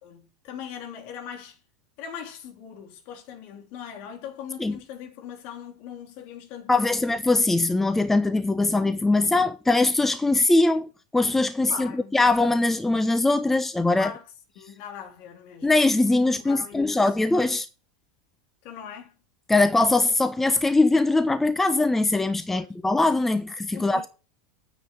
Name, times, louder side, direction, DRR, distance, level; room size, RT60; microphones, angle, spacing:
voice 1, 0.0-1.6 2.0-7.0 11.7-12.2 14.0-15.8 16.1-17.1 18.6-19.2 22.5-22.7 23.7-24.1, left 8 dB, 50° left, 3.2 m, -40 dB
voice 2, 6.7-14.1 15.6-17.7 19.5-24.1, left 2 dB, 10° left, 0.8 m, -22 dB
9.5 x 7.2 x 7.2 m
hypercardioid pair, 90°, 3 cm